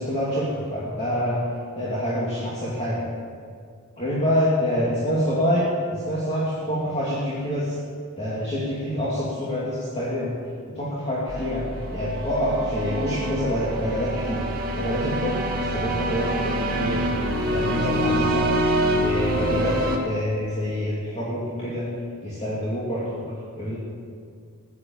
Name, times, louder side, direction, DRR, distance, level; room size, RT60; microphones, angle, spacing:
voice 1, 0.0-1.4 1.7-3.1 4.0-7.8 8.2-10.3 10.7-14.4 14.7-17.1 17.4-18.5 19.0-19.8 20.0-21.9 22.2-23.2 23.5-23.8, equal, 30° left, -7 dB, 2.7 m, -26 dB
sound 1, 11.3-20.0, right 1 dB, 45° right, 1.9 m, -25 dB
15.5 x 11.0 x 7.2 m, 2.2 s
head